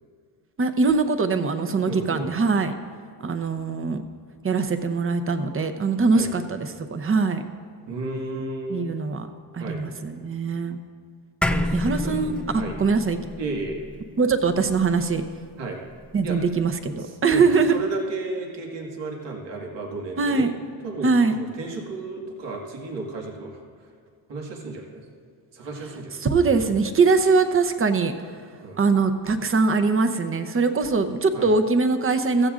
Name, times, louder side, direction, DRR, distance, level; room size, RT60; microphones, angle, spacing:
voice 1, 0.6-2.7 3.2-4.0 4.4-7.4 8.7-9.3 9.5-10.8 11.7-13.2 14.2-15.2 16.1-17.8 20.2-20.5 21.0-21.3 26.2-28.2 28.8-32.5, right 4 dB, 30° right, 7 dB, 0.8 m, -22 dB
voice 2, 1.9-2.3 6.1-6.3 7.9-8.9 9.6-9.8 11.5-12.1 12.5-12.8 13.4-13.8 15.6-15.8 16.2-16.4 17.0-20.5 20.8-23.9 24.3-25.0 25.5-26.3 28.6-28.8 31.3-31.5, right 3 dB, 80° right, -1 dB, 2.1 m, -33 dB
sound 1, 11.4-16.0, left 1 dB, 5° left, 0.4 m, -30 dB
15.5 x 14.5 x 2.5 m, 2.1 s
cardioid pair, 115°, 42 cm